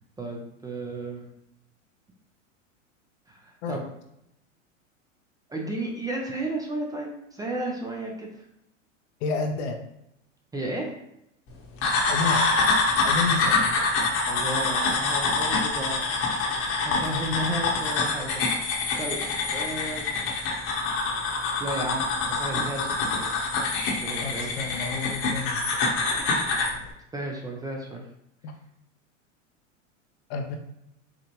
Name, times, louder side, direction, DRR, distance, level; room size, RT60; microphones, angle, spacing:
voice 1, 0.2-1.3 3.3-3.8 5.5-8.4 10.5-10.9 14.2-16.2 16.4-19.2 19.5-20.1 21.6-23.3 23.9-24.5 27.1-28.0, right 1 dB, 10° right, 0 dB, 0.6 m, -33 dB
voice 2, 9.2-9.8 12.1-12.5 13.0-13.7 24.2-25.6 28.4-28.5 30.3-30.6, left 4 dB, 55° left, 4 dB, 0.8 m, -30 dB
sound 1, 11.8-26.8, left 3 dB, 35° left, 1.1 m, -25 dB
4.9 x 2.4 x 3.0 m, 0.80 s
hypercardioid pair, 100°, 39 cm